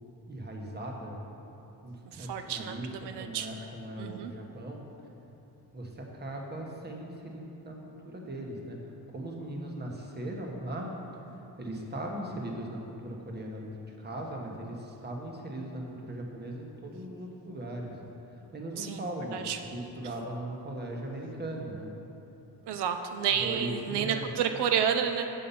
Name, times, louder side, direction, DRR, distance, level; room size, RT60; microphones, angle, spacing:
voice 1, 0.3-1.2 1.8-4.8 5.7-8.8 9.1-10.9 11.6-18.0 18.5-21.9 23.4-24.3, right 1 dB, 25° right, 0 dB, 1.1 m, -39 dB
voice 2, 2.1-3.5 4.0-4.3 18.8-19.0 19.3-19.6 22.7-25.3, right 8 dB, 90° right, 6 dB, 0.5 m, -30 dB
7.5 x 5.5 x 5.5 m, 3.0 s
wide cardioid pair, 120°, 39 cm